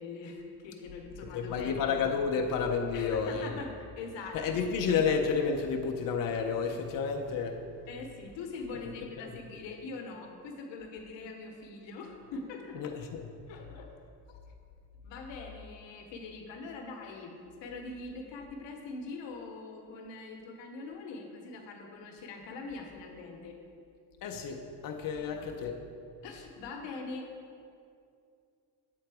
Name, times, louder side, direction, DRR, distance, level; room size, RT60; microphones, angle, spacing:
voice 1, 0.0-1.7 2.9-4.4 7.9-12.8 13.5-13.9 14.3-14.4 15.0-17.3 17.6-23.6 25.1-25.4 26.2-27.3, left 3 dB, 75° left, 3 dB, 0.9 m, -43 dB
voice 2, 1.2-3.6 4.3-7.9 8.7-8.8 9.2-9.3 12.7-13.3 24.2-25.8, left 5 dB, 50° left, 2 dB, 0.6 m, -31 dB
7.6 x 3.9 x 4.7 m, 2.4 s
cardioid pair, 90°, 44 cm